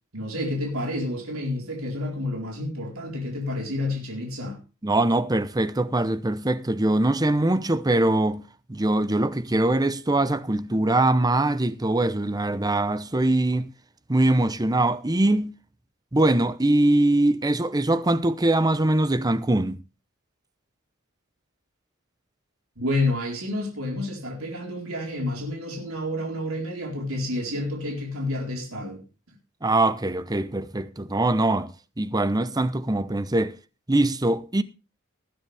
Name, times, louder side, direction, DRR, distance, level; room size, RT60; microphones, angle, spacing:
voice 1, 0.1-4.6 22.8-29.0, left 1 dB, 75° right, 4.3 m, -29 dB
voice 2, 4.8-13.7 14.1-15.6 16.1-19.8 29.6-33.5 33.9-34.6, right 2 dB, 20° right, 0.8 m, -22 dB
19.5 x 10.0 x 3.5 m
head